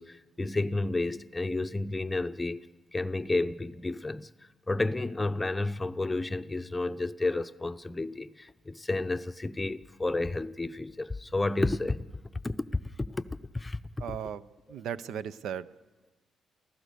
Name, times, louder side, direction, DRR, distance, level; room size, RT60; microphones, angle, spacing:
voice 1, 0.0-2.6 2.9-4.3 4.7-12.0 12.4-13.2 13.5-13.8 14.1-14.2, left 2 dB, 15° left, 0.7 m, -31 dB
voice 2, 14.0-15.7, right 8 dB, 75° right, 0.6 m, -37 dB
28.5 x 15.5 x 6.7 m
cardioid pair, 90°, 0 cm